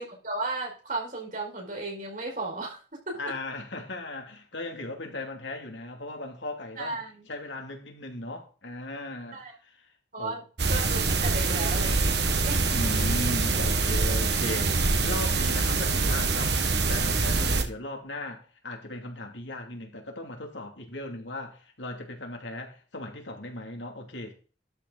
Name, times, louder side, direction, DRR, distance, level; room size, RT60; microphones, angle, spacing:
voice 1, 0.0-3.3 6.8-7.3 9.3-9.5 10.1-13.1, right 2 dB, 45° right, 5.0 m, -35 dB
voice 2, 3.1-7.0 7.3-9.9 10.2-10.4 12.7-16.6 16.9-24.3, left 2 dB, 85° left, 2.9 m, -37 dB
sound 1, 10.6-17.6, right 3 dB, 65° right, 1.6 m, -25 dB
12.5 x 6.8 x 4.1 m
head